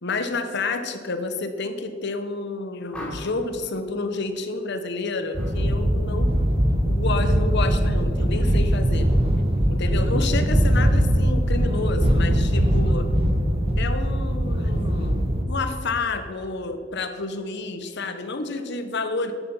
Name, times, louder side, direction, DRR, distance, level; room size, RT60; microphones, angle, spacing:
voice 1, 0.0-6.3 6.8-9.1 9.7-13.1 13.8-15.2 15.5-19.3, left 3 dB, 60° left, 8 dB, 1.1 m, -29 dB
sound 1, 2.9-3.5 5.3-5.6 5.9-6.3, equal, 5° left, 3.4 m, -38 dB
sound 2, 5.3-15.4, equal, 30° right, 1.2 m, -21 dB
13.0 x 9.1 x 5.6 m, 2.3 s
head